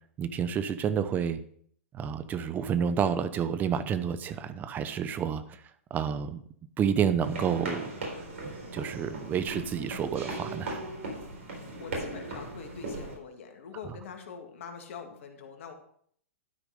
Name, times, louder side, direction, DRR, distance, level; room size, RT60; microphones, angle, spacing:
voice 1, 0.2-1.4 1.9-5.4 5.9-6.4 6.8-8.1 8.4-10.8 13.8-13.9, right 7 dB, 25° right, 12 dB, 0.8 m, -29 dB
sound 1, 7.2-13.1, right 2 dB, 70° right, 4.2 m, -38 dB
voice 2, 11.8-15.7, left 6 dB, 65° left, 4 dB, 2.0 m, -44 dB
12.5 x 5.1 x 5.2 m, 0.62 s
hypercardioid pair, 120°, 7 cm